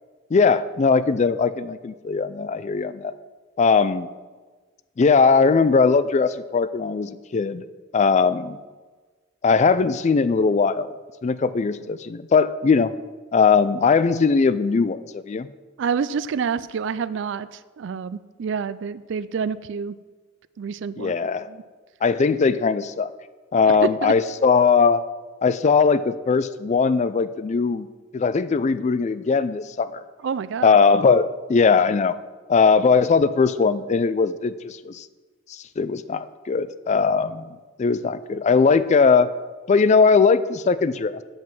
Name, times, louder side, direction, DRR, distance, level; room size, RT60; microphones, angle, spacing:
voice 1, 0.3-3.1 3.6-4.1 5.0-7.6 7.9-8.6 9.4-10.9 11.2-12.9 13.3-15.5 21.0-21.5 22.0-23.1 23.5-25.0 25.4-27.9 28.1-30.0 30.6-32.1 32.5-35.1 35.5-39.3 39.7-41.2, left 5 dB, 35° left, 14 dB, 0.3 m, -19 dB
voice 2, 15.8-20.0 20.6-21.1 21.5-21.6 23.8-24.1 30.2-30.8, right 6 dB, 60° right, 16 dB, 0.4 m, -28 dB
8.0 x 7.5 x 6.0 m, 1.4 s
head